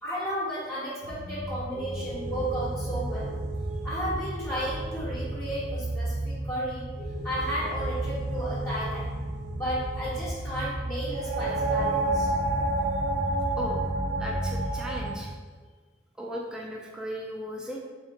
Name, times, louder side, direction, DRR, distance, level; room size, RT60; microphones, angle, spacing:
voice 1, 0.0-3.4 3.8-6.9 7.2-9.1 9.6-12.3, equal, 15° left, -10 dB, 0.8 m, -33 dB
sound 1, 1.0-15.1, right 1 dB, 65° right, 0.7 m, -31 dB
voice 2, 14.2-15.3 16.2-17.8, equal, 5° right, -3 dB, 0.4 m, -36 dB
3.8 x 3.0 x 3.2 m, 1.4 s
head